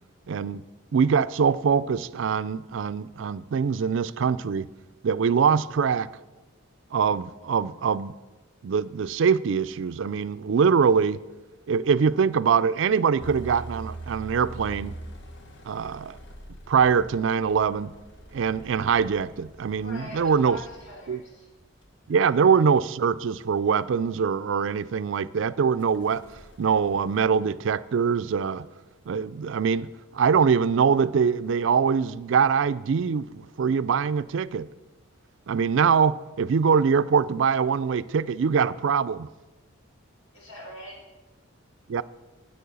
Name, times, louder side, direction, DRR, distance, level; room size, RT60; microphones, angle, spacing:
voice 1, 0.3-0.6 0.9-4.7 5.0-6.1 6.9-8.1 8.6-11.2 11.7-14.9 15.7-16.2 16.7-17.9 18.3-20.6 21.1-21.2 22.1-26.2 26.6-28.7 29.1-34.7 35.5-39.3 41.9-42.0, right 6 dB, 65° right, 0.4 m, -23 dB
sound 1, 13.2-20.9 21.8-21.9 25.8-27.3, right 2 dB, 55° left, 1.1 m, -43 dB
voice 2, 19.8-21.5 22.3-22.4 40.3-41.1, left 1 dB, 90° left, 4.4 m, -43 dB
9.9 x 8.5 x 6.8 m
head